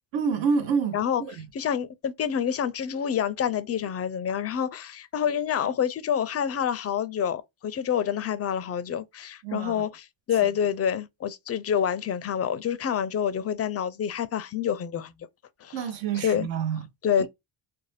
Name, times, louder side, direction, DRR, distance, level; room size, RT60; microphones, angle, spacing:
voice 1, 0.1-1.3 9.4-9.8 15.7-16.8 17.2-17.3, right 6 dB, 70° right, 0.8 m, -27 dB
voice 2, 1.5-15.1 15.6-16.5 17.0-17.3, left 8 dB, 35° left, 0.4 m, -27 dB
2.6 x 2.1 x 3.2 m
cardioid pair, 90°, 48 cm